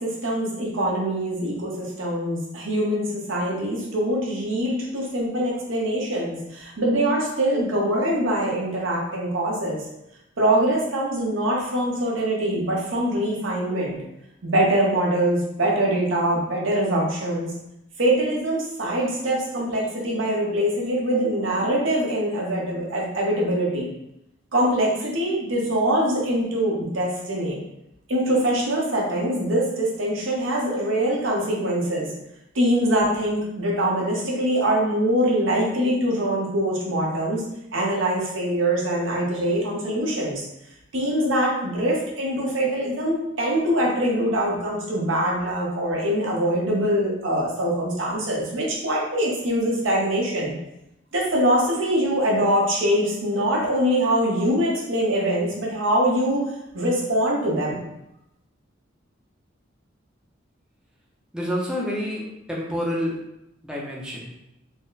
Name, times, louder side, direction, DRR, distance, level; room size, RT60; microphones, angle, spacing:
voice 1, 0.0-9.8 10.4-14.0 14.4-17.5 18.0-23.9 24.5-27.6 28.1-32.1 32.5-37.4 37.7-40.4 40.9-50.5 51.1-56.4 56.7-57.8, right 1 dB, 80° right, -3 dB, 1.1 m, -23 dB
voice 2, 61.3-63.2 63.6-64.3, equal, 5° right, -4 dB, 0.6 m, -28 dB
4.1 x 2.1 x 3.9 m, 0.85 s
head